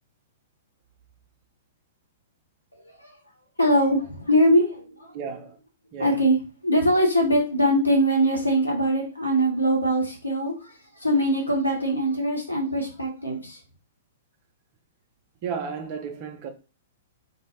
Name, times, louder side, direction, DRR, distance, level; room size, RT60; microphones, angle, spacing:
voice 1, 3.6-5.1 6.0-6.4 6.6-10.7 11.0-13.6, equal, 85° left, 0.9 m, -22 dB
voice 2, 5.1-5.6 5.9-6.2 15.4-16.5, right 6 dB, 40° right, 0.5 m, -33 dB
2.3 x 2.0 x 3.3 m
figure-of-eight pair, 110°, 0 cm